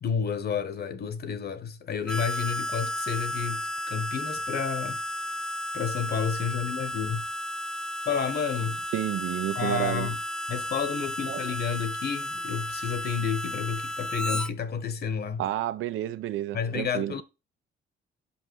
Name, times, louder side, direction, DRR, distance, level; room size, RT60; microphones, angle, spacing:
voice 1, 0.0-5.0 5.7-7.2 8.0-8.8 9.5-10.2 10.5-15.4 16.5-17.2, left 6 dB, 55° left, 1.3 m, -30 dB
Harmonica, 2.1-14.5, left 1 dB, 5° left, 0.4 m, -33 dB
voice 2, 8.9-10.1 11.3-11.4 15.4-17.2, right 13 dB, 85° right, 0.7 m, -30 dB
5.8 x 5.4 x 4.6 m
cardioid pair, 90°, 20 cm